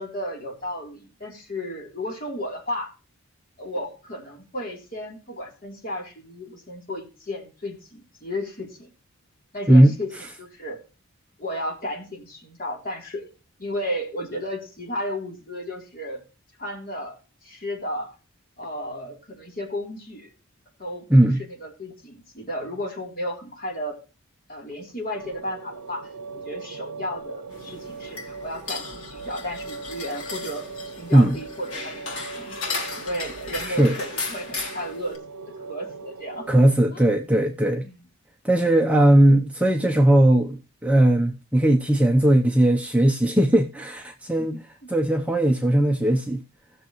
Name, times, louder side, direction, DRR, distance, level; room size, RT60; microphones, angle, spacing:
voice 1, 0.0-2.9 3.6-8.9 9.5-10.1 10.4-10.8 11.4-13.3 13.6-16.2 16.6-18.2 18.6-20.3 20.8-21.1 21.4-23.9 24.5-32.0 32.4-32.6 33.0-35.2 35.7-36.5 36.9-37.0 37.8-38.0 44.4-44.9, left 1 dB, 40° left, 3.2 m, -33 dB
sound 1, 25.1-36.8, right 4 dB, 85° right, 0.5 m, -40 dB
sound 2, 27.5-35.2, left 4 dB, 70° left, 2.3 m, -35 dB
voice 2, 36.5-37.8 38.4-44.6 44.9-46.4, right 1 dB, 5° right, 0.7 m, -18 dB
17.0 x 6.7 x 3.0 m
head